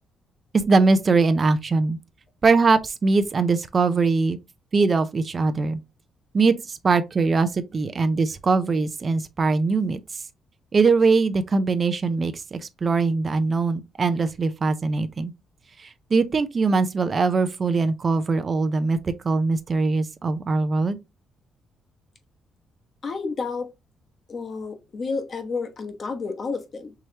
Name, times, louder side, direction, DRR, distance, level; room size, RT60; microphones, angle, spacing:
voice 1, 0.7-2.0 2.4-4.4 4.7-5.8 6.3-10.2 10.7-15.3 15.8-21.0, right 4 dB, 40° right, 0.5 m, -22 dB
voice 2, 23.0-23.7 24.3-26.9, left 4 dB, 45° left, 1.0 m, -30 dB
4.7 x 3.2 x 2.7 m
cardioid pair, 90°, 0 cm